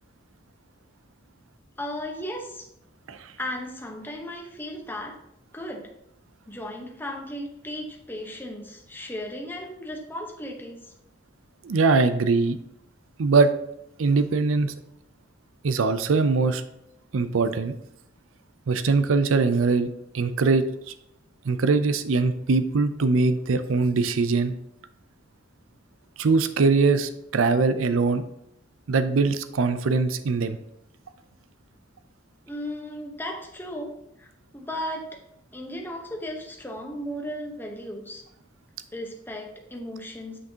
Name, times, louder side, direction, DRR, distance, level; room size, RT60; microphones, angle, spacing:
voice 1, 1.8-2.7 3.4-5.1 5.5-5.9 6.5-10.8 32.5-33.9 34.2-34.3 34.5-35.2 35.5-38.2 38.9-40.4, left 1 dB, 10° left, 1 dB, 1.0 m, -35 dB
voice 2, 11.6-12.6 13.2-13.5 14.0-14.7 15.6-16.6 17.1-17.7 18.7-19.9 20.1-20.9 21.5-24.5 26.2-28.2 28.9-30.6, right 4 dB, 90° right, 11 dB, 0.5 m, -22 dB
8.0 x 5.9 x 2.8 m, 0.81 s
head